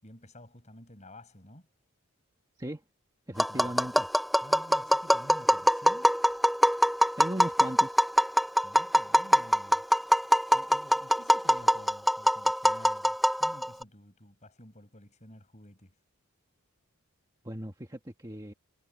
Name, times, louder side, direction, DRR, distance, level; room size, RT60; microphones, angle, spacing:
voice 1, 0.0-1.7 3.5-3.8 4.4-6.2 8.6-9.9 10.5-16.0, left 1 dB, 30° left, 7.4 m, -52 dB
voice 2, 3.3-4.1 7.2-8.0 17.4-18.5, right 1 dB, 15° right, 1.7 m, -37 dB
Tap, 3.4-13.8, equal, ahead, 0.5 m, -24 dB
head